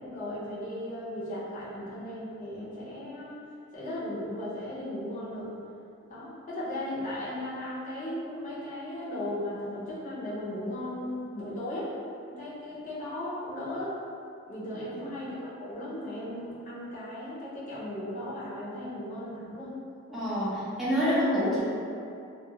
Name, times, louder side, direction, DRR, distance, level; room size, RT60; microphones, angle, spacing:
voice 1, 0.0-3.4 3.7-5.5 6.1-11.9 12.3-14.0 14.4-19.8 21.3-21.4, left 1 dB, 35° left, -9 dB, 0.7 m, -36 dB
voice 2, 20.1-21.6, equal, ahead, -11 dB, 0.6 m, -27 dB
2.3 x 2.3 x 2.8 m, 2.5 s
head